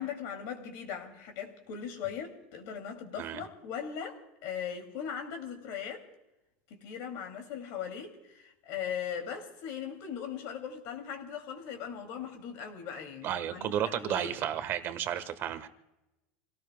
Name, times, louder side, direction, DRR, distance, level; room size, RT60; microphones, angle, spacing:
voice 1, 0.0-6.0 6.7-14.3, left 8 dB, 60° left, 5 dB, 2.7 m, -39 dB
voice 2, 13.2-15.7, right 10 dB, 40° right, 10 dB, 1.4 m, -32 dB
28.5 x 17.5 x 2.3 m, 0.97 s
supercardioid pair, 145°, 6 cm